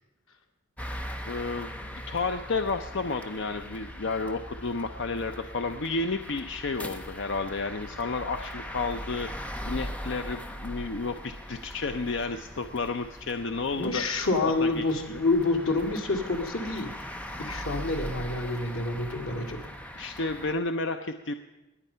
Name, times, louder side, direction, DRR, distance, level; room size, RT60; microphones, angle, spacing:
sound 1, 0.8-20.5, equal, 5° left, 0.7 m, -40 dB
voice 1, 1.2-14.0 14.6-15.2 20.0-21.3, left 3 dB, 60° left, 7 dB, 0.6 m, -32 dB
voice 2, 13.8-16.9 17.4-19.6, left 3 dB, 85° left, 3 dB, 2.1 m, -28 dB
20.0 x 9.6 x 5.6 m, 1.0 s
head